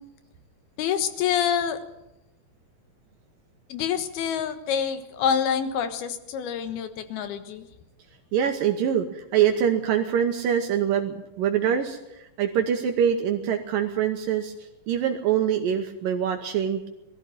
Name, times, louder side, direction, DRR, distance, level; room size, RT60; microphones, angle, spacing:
voice 1, 0.8-1.8 3.7-7.7, left 8 dB, 85° left, 9 dB, 3.3 m, -27 dB
voice 2, 8.3-14.5 14.9-16.9, right 9 dB, 70° right, 4 dB, 2.7 m, -24 dB
19.5 x 14.0 x 9.3 m, 0.90 s
omnidirectional pair, 4.3 m